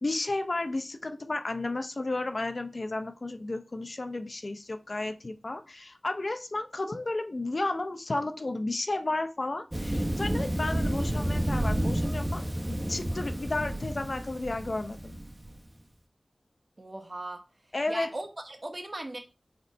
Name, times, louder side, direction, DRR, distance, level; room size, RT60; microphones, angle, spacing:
voice 1, 0.0-15.2 17.7-18.1, left 2 dB, 55° left, 0.7 m, -33 dB
Thunder, 9.7-15.6, right 1 dB, 25° right, 1.1 m, -30 dB
voice 2, 16.8-17.4 17.9-19.2, right 2 dB, 45° right, 1.3 m, -38 dB
4.4 x 4.0 x 5.4 m
wide cardioid pair, 45°, 0 cm